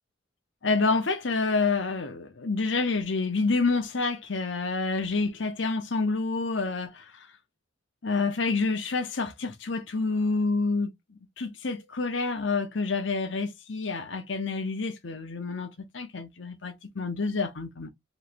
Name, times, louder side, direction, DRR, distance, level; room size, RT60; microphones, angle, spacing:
voice 1, 0.6-7.3 8.0-15.7 15.9-17.9, left 3 dB, 65° left, 0.9 m, -28 dB
5.4 x 3.2 x 2.6 m
head